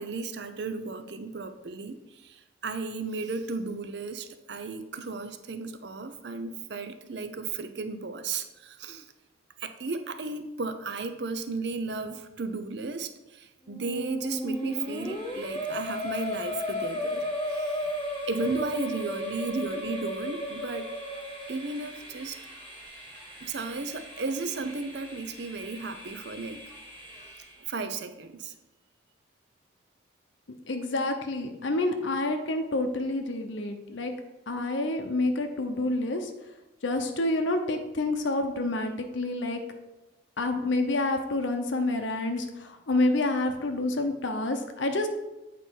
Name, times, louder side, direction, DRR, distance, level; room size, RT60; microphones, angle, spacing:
voice 1, 0.0-9.1 9.6-17.8 18.3-20.9 21.5-22.4 23.4-26.6 27.7-28.5, right 3 dB, 60° right, 9 dB, 0.6 m, -34 dB
Musical instrument, 13.7-21.7, left 1 dB, 20° left, 0.6 m, -33 dB
Train, 14.4-27.8, right 1 dB, 25° right, 1.6 m, -46 dB
voice 2, 30.7-34.1 34.5-36.3 36.8-39.6 40.4-45.1, left 2 dB, 75° left, 5 dB, 0.8 m, -28 dB
8.4 x 4.2 x 4.6 m, 1.0 s
head